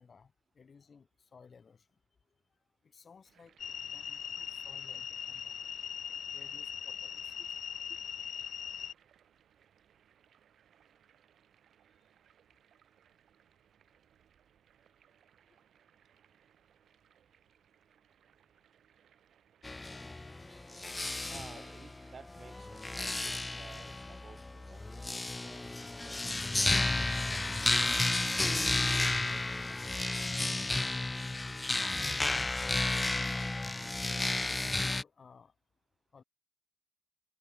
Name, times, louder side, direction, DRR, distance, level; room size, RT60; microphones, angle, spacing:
voice 1, 0.0-1.9 2.8-5.5 6.3-7.4 21.3-21.5 32.6-33.2 34.4-35.5 36.1-36.2, left 5 dB, 40° left, 2.0 m, -58 dB
sound 1, 3.2-23.1, right 9 dB, 60° right, 4.9 m, -67 dB
sound 2, 3.6-8.9, left 8 dB, 55° left, 0.4 m, -40 dB
sound 3, 19.6-35.0, left 2 dB, 15° left, 0.6 m, -32 dB
voice 2, 21.3-26.2 26.7-29.9, right 5 dB, 40° right, 6.9 m, -55 dB
cardioid pair, 90°, 0 cm